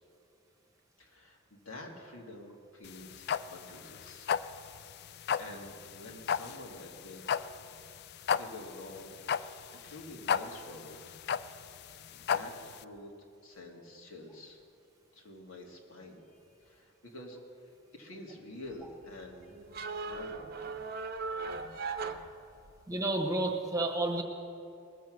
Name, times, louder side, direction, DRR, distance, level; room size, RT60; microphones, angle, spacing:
voice 1, 1.0-4.4 5.1-7.4 8.3-9.2 9.8-11.0 11.7-11.8 12.1-13.1 13.4-14.6 15.1-16.2 16.6-19.6 20.0-20.5, left 1 dB, 90° left, 0 dB, 2.1 m, -48 dB
sound 1, 2.8-12.8, left 7 dB, 50° left, 0.3 m, -34 dB
sound 2, 18.7-23.0, right 4 dB, 50° right, 0.7 m, -39 dB
voice 2, 22.9-24.2, right 2 dB, 15° right, 2 dB, 1.1 m, -30 dB
20.0 x 7.6 x 6.3 m, 2.6 s
head